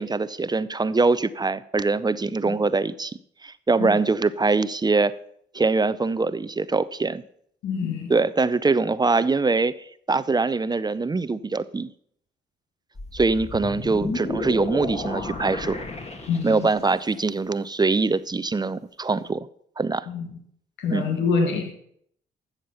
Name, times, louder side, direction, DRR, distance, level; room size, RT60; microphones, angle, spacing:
voice 1, 0.0-5.1 5.5-7.2 8.1-9.7 10.1-11.9 13.1-15.8 16.4-19.5 19.8-20.1 20.9-21.0, right 3 dB, 20° right, 15 dB, 0.6 m, -23 dB
voice 2, 7.6-8.1 16.3-16.7 20.1-20.3 20.8-21.7, left 5 dB, 85° left, 4 dB, 1.6 m, -25 dB
sound 1, 13.0-16.9, left 2 dB, 35° left, 2.2 m, -32 dB
13.0 x 7.3 x 5.7 m, 0.68 s
supercardioid pair, 65°, 19 cm